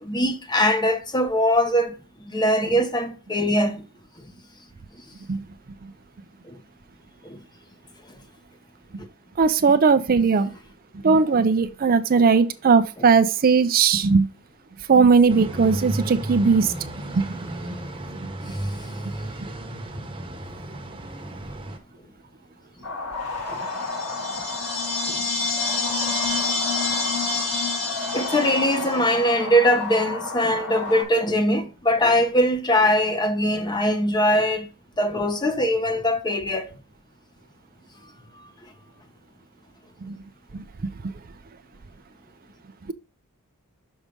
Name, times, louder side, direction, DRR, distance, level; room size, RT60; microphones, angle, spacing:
voice 1, 0.0-1.9 2.2-3.8 4.2-4.3 6.4-6.6 7.2-7.4 12.1-12.3 13.0-13.1 23.5-23.7 25.1-25.2 28.1-34.7 35.0-36.7, equal, 20° left, 0.8 m, -22 dB
voice 2, 9.4-10.5 11.0-14.3 14.9-16.7 17.1-17.2 40.1-40.2 40.5-40.6, right 5 dB, 40° right, 0.5 m, -18 dB
sound 1, 15.3-21.8, right 1 dB, 25° right, 1.1 m, -33 dB
sound 2, 22.8-31.0, left 3 dB, 80° left, 3.5 m, -32 dB
sound 3, 23.7-29.1, left 3 dB, 45° left, 3.1 m, -27 dB
6.4 x 4.8 x 5.3 m
head